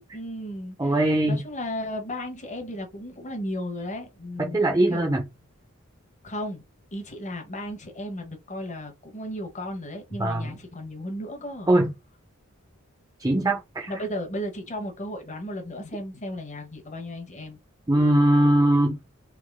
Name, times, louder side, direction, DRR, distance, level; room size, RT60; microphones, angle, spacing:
voice 1, 0.0-5.2 6.2-6.6 6.9-11.7 13.9-17.6, left 1 dB, 35° left, 1.2 m, -35 dB
voice 2, 0.8-1.4 4.4-5.2 10.2-10.6 11.7-11.9 13.2-13.9 17.9-19.0, right 1 dB, 15° right, 0.6 m, -21 dB
3.6 x 2.9 x 3.6 m
head